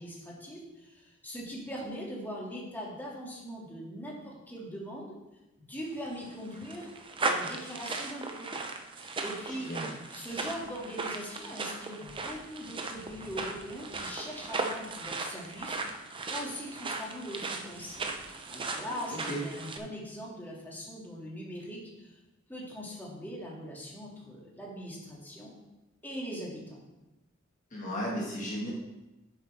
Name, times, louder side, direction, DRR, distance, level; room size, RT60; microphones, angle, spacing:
voice 1, 0.0-5.2 5.6-6.9 7.2-8.5 9.0-9.7 10.1-15.8 16.3-22.2 22.5-25.5 26.0-26.8, equal, 10° left, -4 dB, 2.0 m, -41 dB
sound 1, 5.9-19.8, right 3 dB, 25° right, 0.7 m, -37 dB
voice 2, 9.5-9.9 19.3-19.4 27.7-28.7, equal, 40° left, -3 dB, 1.6 m, -34 dB
9.0 x 7.8 x 3.3 m, 0.99 s
head